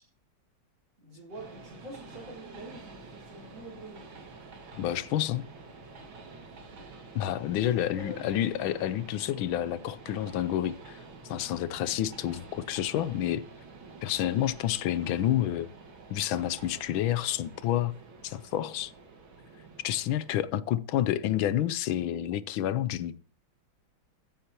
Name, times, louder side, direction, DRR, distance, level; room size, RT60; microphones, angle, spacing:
voice 1, 1.0-4.1 7.6-8.4, right 1 dB, 65° right, 4.6 m, -46 dB
Train, 1.3-20.4, right 3 dB, 80° right, 2.6 m, -49 dB
voice 2, 4.8-5.5 7.1-11.0 11.2-13.4 14.0-15.7 16.1-17.9 18.2-18.9 19.8-23.2, left 12 dB, 85° left, 1.5 m, -29 dB
15.0 x 9.8 x 2.9 m
omnidirectional pair, 2.2 m